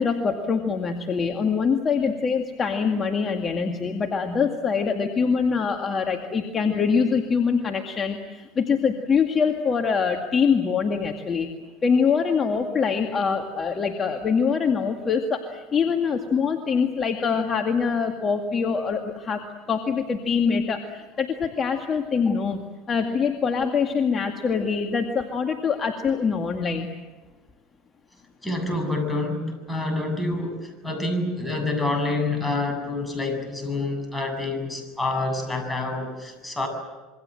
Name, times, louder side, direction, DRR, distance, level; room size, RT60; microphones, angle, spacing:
voice 1, 0.0-11.5 11.8-19.4 19.7-22.6 22.9-26.9, left 5 dB, 30° left, 3 dB, 2.2 m, -24 dB
voice 2, 28.4-36.7, left 2 dB, 5° left, 4 dB, 7.6 m, -27 dB
27.0 x 24.0 x 7.8 m, 1.2 s
supercardioid pair, 100°, 0 cm